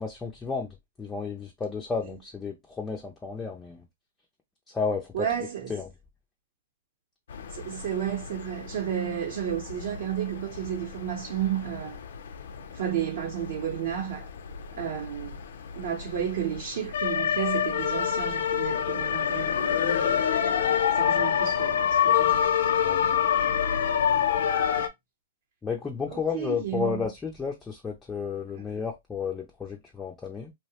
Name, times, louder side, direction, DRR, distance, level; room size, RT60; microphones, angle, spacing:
voice 1, 0.0-3.8 4.7-5.3 5.7-5.9 22.8-23.2 25.6-30.5, left 5 dB, 10° left, 0.4 m, -32 dB
voice 2, 5.1-5.7 7.5-12.0 12.7-14.3 14.8-15.4 15.7-22.5 26.1-27.1 28.5-28.6, right 10 dB, 55° right, 0.7 m, -32 dB
sound 1, 7.3-24.9, left 8 dB, 70° left, 0.4 m, -28 dB
2.7 x 2.0 x 2.8 m
hypercardioid pair, 165°, 0 cm